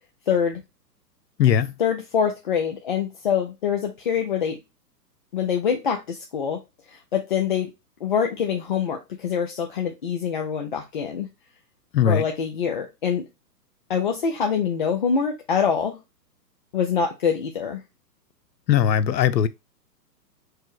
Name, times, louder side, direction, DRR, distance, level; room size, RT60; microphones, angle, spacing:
voice 1, 0.3-0.6 1.8-4.6 5.3-6.6 6.9-7.7 8.0-11.3 12.0-13.2 13.9-16.0 16.7-17.8, left 7 dB, 35° left, 0.4 m, -25 dB
voice 2, 1.4-1.7 11.9-12.2 18.7-19.5, left 9 dB, 85° left, 0.7 m, -19 dB
4.7 x 2.0 x 4.5 m
hypercardioid pair, 140°, 49 cm